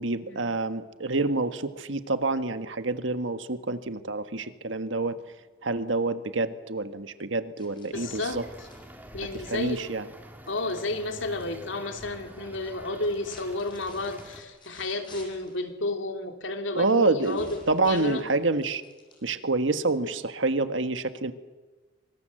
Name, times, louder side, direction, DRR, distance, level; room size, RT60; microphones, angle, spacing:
voice 1, 0.0-5.2 5.6-8.4 9.5-10.1 16.7-18.8 19.2-21.3, right 3 dB, 75° right, 9 dB, 1.5 m, -27 dB
sound 1, 7.6-11.5 11.8-12.4 12.9-15.6 16.9-19.6, left 2 dB, 25° left, 7.0 m, -52 dB
voice 2, 7.9-8.7 9.1-9.8 10.5-18.3, left 2 dB, 75° left, 5 dB, 3.1 m, -32 dB
sound 2, 7.9-14.4, right 1 dB, 10° right, 2.8 m, -47 dB
25.5 x 25.0 x 7.7 m, 1.2 s
head